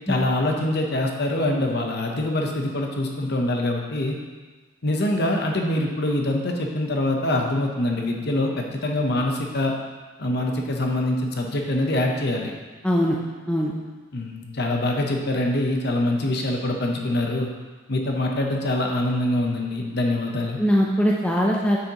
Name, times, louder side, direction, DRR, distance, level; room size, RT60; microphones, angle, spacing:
voice 1, 0.1-4.2 4.8-9.7 10.2-12.5 14.1-17.5 17.9-20.6, left 1 dB, 50° left, 1 dB, 0.9 m, -24 dB
voice 2, 12.8-13.2 13.5-13.7 20.6-21.8, equal, 5° left, -2 dB, 0.5 m, -21 dB
8.4 x 6.6 x 2.9 m, 1.3 s
head